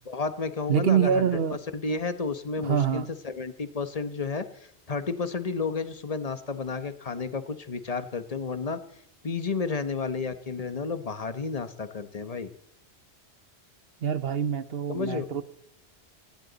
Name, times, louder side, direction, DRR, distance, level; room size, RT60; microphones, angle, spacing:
voice 1, 0.0-4.4 4.9-8.8 9.2-12.5 14.9-15.3, left 4 dB, 35° left, 1.1 m, -31 dB
voice 2, 0.7-1.6 2.6-3.1 14.0-15.4, right 8 dB, 65° right, 1.2 m, -25 dB
19.5 x 16.5 x 4.0 m
omnidirectional pair, 1.1 m